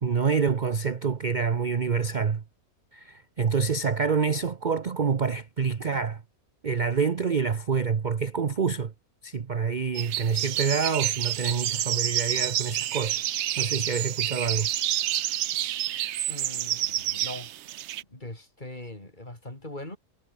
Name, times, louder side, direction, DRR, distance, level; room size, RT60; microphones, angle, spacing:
voice 1, 0.0-2.4 2.9-6.2 6.6-8.9 9.2-13.2 13.6-14.7, right 5 dB, 35° right, 0.9 m, -27 dB
sound 1, 9.9-18.0, right 12 dB, 65° right, 0.8 m, -29 dB
voice 2, 16.3-17.5 18.1-20.0, left 1 dB, 30° left, 4.9 m, -41 dB
omnidirectional pair, 1.5 m